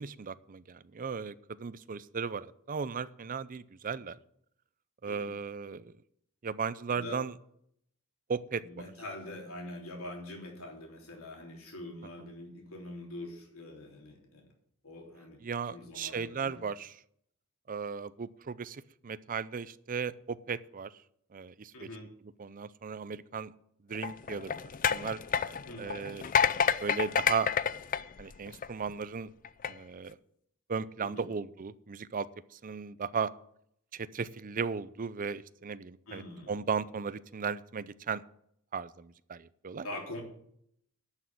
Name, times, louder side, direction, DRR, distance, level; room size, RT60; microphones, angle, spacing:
voice 1, 0.0-1.3 1.6-4.2 5.0-5.9 6.4-7.3 8.3-8.9 15.4-17.0 17.7-20.9 21.3-21.9 22.4-23.5 23.9-24.5 24.9-25.2 25.8-26.3 26.8-27.5 28.2-29.3 29.7-30.2 30.7-33.3 33.9-38.2 38.7-39.9, right 5 dB, 40° right, 16 dB, 0.5 m, -36 dB
voice 2, 8.6-14.5 14.8-16.6 21.7-22.1 25.7-25.9 31.0-31.2 36.1-36.6 39.8-40.2, left 1 dB, 70° left, 1 dB, 3.5 m, -44 dB
sound 1, 23.9-28.9 29.4-29.7, left 7 dB, 40° left, 0.4 m, -29 dB
11.5 x 6.3 x 9.1 m, 0.71 s
head